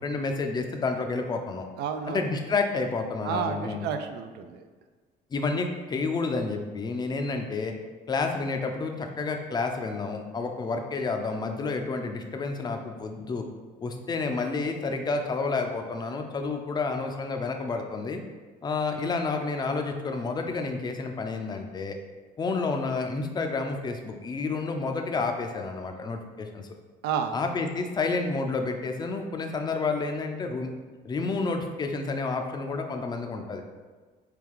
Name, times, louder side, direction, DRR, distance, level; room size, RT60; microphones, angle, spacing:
voice 1, 0.0-1.7 2.1-3.8 5.3-7.7 8.1-13.5 13.8-18.2 18.6-22.0 22.4-26.7 27.3-30.7 31.0-33.6, left 4 dB, 25° left, 4 dB, 0.4 m, -30 dB
voice 2, 1.8-2.3 3.2-4.7 27.0-27.4, right 7 dB, 80° right, 7 dB, 0.4 m, -31 dB
4.7 x 2.2 x 3.7 m, 1.4 s
cardioid pair, 110°, 17 cm